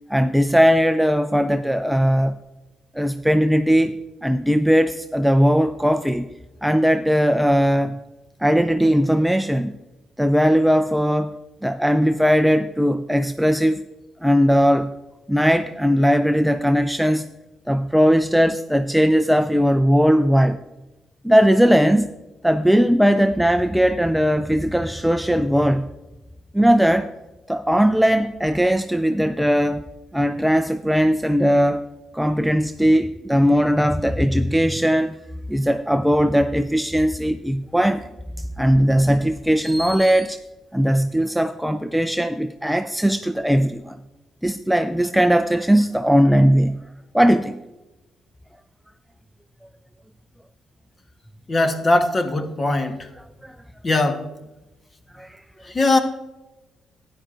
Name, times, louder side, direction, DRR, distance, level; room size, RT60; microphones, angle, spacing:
voice 1, 0.1-2.4 2.9-6.3 6.6-8.0 8.4-9.7 10.2-11.4 11.6-13.8 14.2-14.9 15.3-17.3 17.7-20.6 21.2-22.1 22.4-25.9 26.5-27.1 27.5-29.9 30.1-31.9 32.1-35.2 35.5-38.1 38.4-40.4 40.7-44.0 44.4-46.9 47.1-47.6 53.2-53.6 55.1-55.4, equal, ahead, 9 dB, 0.4 m, -19 dB
voice 2, 51.5-53.0 53.8-54.2 55.7-56.0, left 2 dB, 30° left, 6 dB, 1.3 m, -19 dB
13.0 x 10.0 x 2.6 m, 1.0 s
cardioid pair, 90°, 0 cm